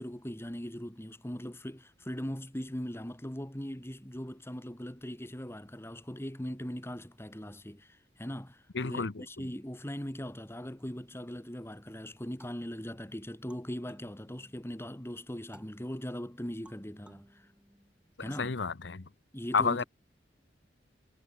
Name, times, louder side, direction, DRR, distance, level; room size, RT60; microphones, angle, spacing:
voice 1, 0.0-17.5 18.2-18.5 19.3-19.9, equal, 15° left, 2.6 m, -40 dB
voice 2, 8.7-9.5 18.2-19.1 19.5-19.8, left 5 dB, 80° left, 0.9 m, -31 dB
sound 1, 12.4-14.9 15.5-18.3, equal, 5° right, 2.8 m, -60 dB
head